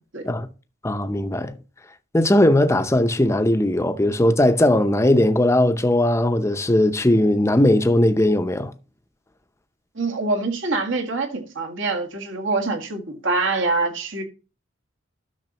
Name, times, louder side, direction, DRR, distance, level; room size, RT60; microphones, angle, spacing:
voice 1, 0.8-1.6 2.1-8.7, left 1 dB, 15° left, 0.7 m, -18 dB
voice 2, 10.0-14.2, right 3 dB, 70° right, 1.8 m, -25 dB
12.0 x 6.5 x 3.0 m
head